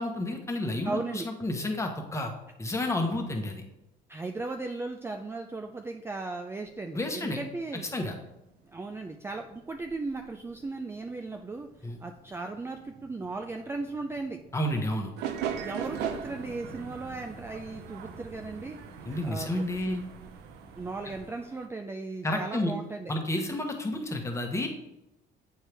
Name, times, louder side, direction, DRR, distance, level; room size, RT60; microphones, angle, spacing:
voice 1, 0.0-2.3 2.6-3.6 6.9-7.4 7.9-8.2 11.8-12.0 14.5-15.1 19.0-20.0 22.2-22.7 23.1-24.7, left 1 dB, 15° left, 3 dB, 1.1 m, -30 dB
voice 2, 0.9-1.3 4.1-7.8 8.7-11.7 12.0-14.4 15.6-18.8 19.2-20.0 20.8-23.1, right 3 dB, 15° right, 4 dB, 0.4 m, -36 dB
sound 1, 6.6-21.3, right 2 dB, 60° right, 1.5 m, -53 dB
sound 2, 15.2-21.7, right 8 dB, 85° right, 0.6 m, -39 dB
8.3 x 4.5 x 3.4 m, 0.92 s
cardioid pair, 110°, 17 cm